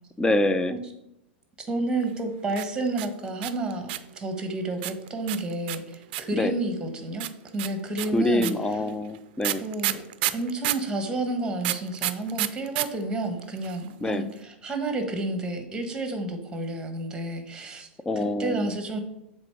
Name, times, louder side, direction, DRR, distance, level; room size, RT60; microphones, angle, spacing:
voice 1, 0.2-0.7 6.3-6.5 8.1-9.6 14.0-14.3 18.1-18.7, left 1 dB, 10° left, 12 dB, 0.5 m, -25 dB
voice 2, 1.6-7.3 7.5-8.5 9.6-10.0 10.3-17.9 18.4-19.0, right 2 dB, 15° right, 5 dB, 1.3 m, -30 dB
sound 1, 2.5-4.2 4.8-6.4 7.2-10.9 11.6-12.9 13.1-13.2 13.4-13.9, right 15 dB, 55° right, 0.4 m, -29 dB
7.6 x 3.7 x 4.6 m, 0.84 s
hypercardioid pair, 105°, 6 cm